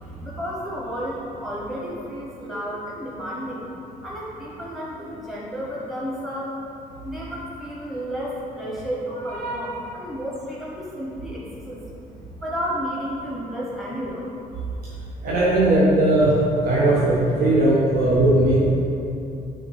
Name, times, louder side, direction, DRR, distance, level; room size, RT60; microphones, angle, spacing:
voice 1, 0.2-3.6 4.0-6.5 7.0-11.8 12.4-14.2, equal, ahead, -6 dB, 0.8 m, -32 dB
voice 2, 9.4-9.8 15.2-16.3 16.6-18.7, right 1 dB, 80° right, -7 dB, 0.9 m, -18 dB
7.7 x 3.6 x 3.3 m, 2.8 s
cardioid pair, 125°, 15 cm